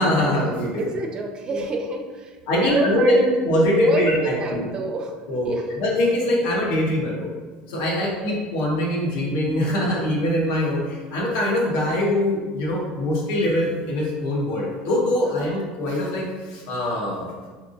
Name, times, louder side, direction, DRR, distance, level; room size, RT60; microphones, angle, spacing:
voice 1, 0.0-0.9 1.5-1.6 2.5-4.7 5.3-7.3 7.7-17.3, left 1 dB, 70° left, -3 dB, 1.2 m, -23 dB
voice 2, 0.8-3.3 3.8-5.7 8.2-8.4 15.4-15.5, right 3 dB, 30° right, 3 dB, 0.4 m, -28 dB
4.8 x 3.4 x 2.6 m, 1.4 s
cardioid pair, 155°, 3 cm